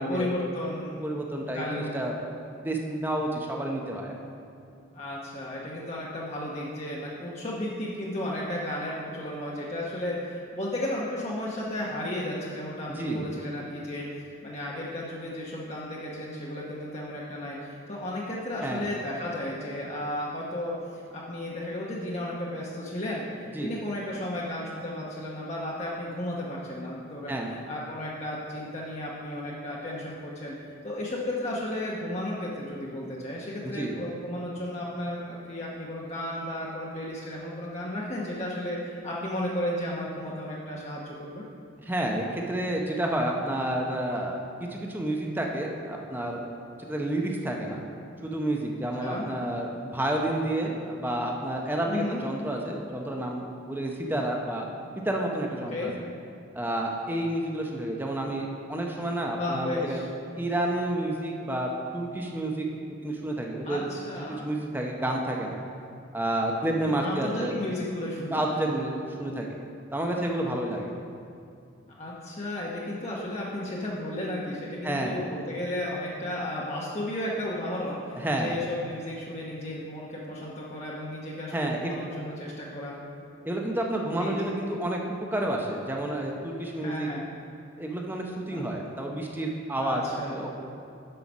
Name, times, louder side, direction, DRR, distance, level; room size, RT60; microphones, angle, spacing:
voice 1, 0.0-1.0 1.4-2.1 4.9-14.1 14.4-27.4 27.7-30.6 30.8-41.4 49.0-49.3 51.9-52.2 55.7-55.9 59.4-60.0 63.6-64.5 66.9-68.5 72.0-83.0 84.2-84.4 86.8-87.3 88.5-88.6 89.8-90.4, left 1 dB, 30° left, -5 dB, 0.9 m, -34 dB
voice 2, 1.0-2.2 2.6-4.1 12.9-13.3 18.6-18.9 23.5-23.7 27.3-27.5 33.6-33.9 41.8-44.4 44.7-46.4 46.9-47.8 48.2-54.6 55.0-55.7 56.5-60.0 60.4-62.6 63.0-63.9 64.2-65.6 66.1-67.5 68.2-69.5 69.9-70.9 74.8-75.2 78.1-78.5 81.5-82.2 83.4-87.1 87.8-90.0 90.3-90.6, right 1 dB, 10° right, 0 dB, 0.7 m, -30 dB
7.8 x 5.7 x 6.1 m, 2.6 s
head